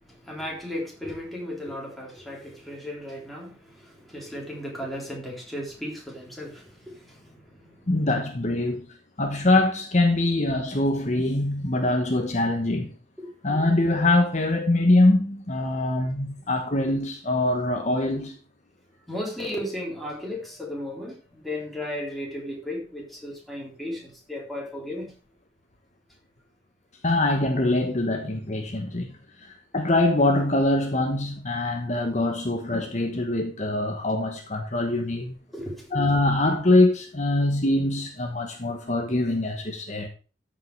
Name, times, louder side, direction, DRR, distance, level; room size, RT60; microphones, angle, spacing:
voice 1, 0.0-8.0 13.2-13.3 13.6-13.7 19.1-25.1 35.5-36.0, left 1 dB, ahead, 3.5 m, -35 dB
voice 2, 7.9-8.9 9.2-12.9 13.4-18.3 27.0-29.1 29.4-35.3 35.9-40.1, left 2 dB, 40° left, 1.1 m, -23 dB
13.5 x 5.6 x 4.7 m
head